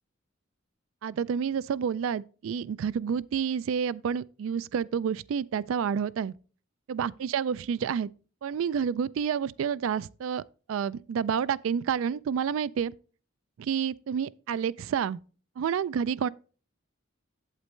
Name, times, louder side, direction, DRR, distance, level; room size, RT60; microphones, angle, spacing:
voice 1, 1.0-6.3 6.9-8.1 8.4-10.4 10.7-12.9 13.6-15.2 15.6-16.3, right 7 dB, 75° right, 0.3 m, -29 dB
8.2 x 8.2 x 3.2 m
head